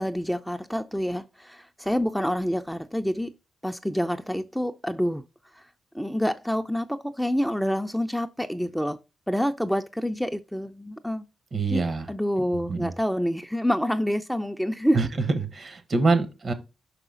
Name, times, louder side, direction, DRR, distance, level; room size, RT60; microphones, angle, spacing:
voice 1, 0.0-3.3 3.6-5.2 5.9-9.0 9.3-11.3 11.7-15.1, equal, ahead, 0.5 m, -27 dB
voice 2, 11.5-12.1 12.5-12.9 14.9-15.1 15.5-16.5, right 3 dB, 55° right, 1.2 m, -25 dB
5.4 x 5.0 x 3.9 m
supercardioid pair, 50°, 0 cm